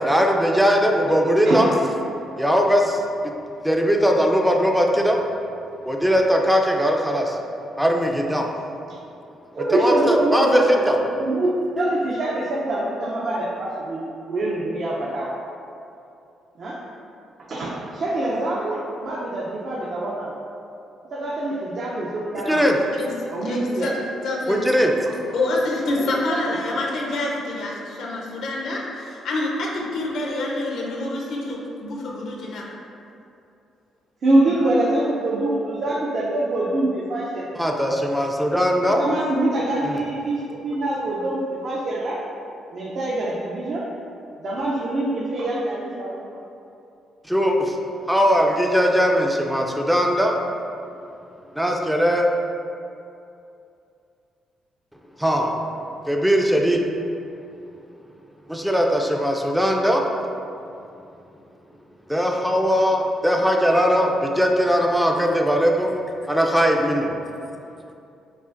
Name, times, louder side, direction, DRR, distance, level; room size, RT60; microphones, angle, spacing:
voice 1, 0.0-1.7 2.4-3.0 3.6-5.2 5.8-7.4 7.8-8.5 9.7-11.0 22.4-22.8 24.5-25.0 37.5-39.1 39.8-40.0 47.3-47.8 48.1-50.4 51.6-52.3 55.2-55.6 56.1-56.8 58.5-60.1 62.1-66.0 66.2-67.2, equal, 5° right, 1 dB, 0.4 m, -20 dB
voice 2, 1.4-1.8 9.5-10.8 11.2-15.3 16.6-16.8 17.5-20.3 21.1-22.7 23.3-23.9 26.3-26.6 34.2-37.5 38.9-42.2 42.7-43.9 44.4-46.2, right 1 dB, 55° right, -6 dB, 0.5 m, -24 dB
voice 3, 22.9-24.6 25.3-32.6 34.4-34.8, left 2 dB, 75° left, -2 dB, 0.7 m, -27 dB
5.5 x 2.4 x 2.5 m, 2.6 s
cardioid pair, 90°, 0 cm